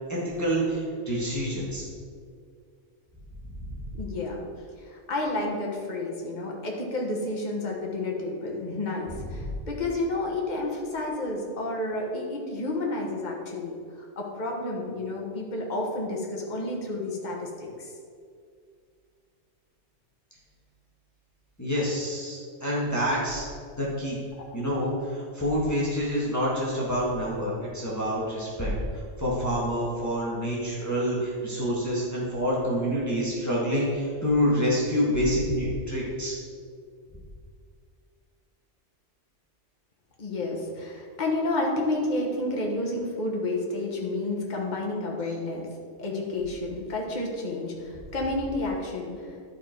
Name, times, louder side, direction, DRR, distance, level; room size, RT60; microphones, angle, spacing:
voice 1, 0.1-1.9 21.6-23.4 23.8-24.2 24.5-36.3, equal, 15° left, -7 dB, 1.7 m, -27 dB
voice 2, 3.9-4.5 4.8-17.9 40.2-45.7 46.0-49.4, left 2 dB, 40° left, -1 dB, 1.3 m, -30 dB
11.0 x 4.9 x 4.5 m, 2.2 s
omnidirectional pair, 1.2 m